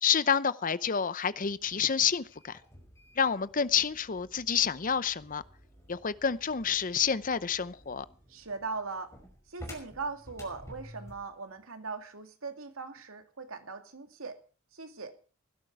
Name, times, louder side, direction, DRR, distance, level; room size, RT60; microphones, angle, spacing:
voice 1, 0.0-2.6 3.2-5.4 5.9-8.1, left 7 dB, 40° left, 0.7 m, -28 dB
sound 1, 1.4-11.3, equal, 15° left, 5.5 m, -52 dB
voice 2, 8.3-9.1 9.5-14.4 14.7-15.2, right 4 dB, 85° right, 2.4 m, -40 dB
17.0 x 12.0 x 4.7 m
head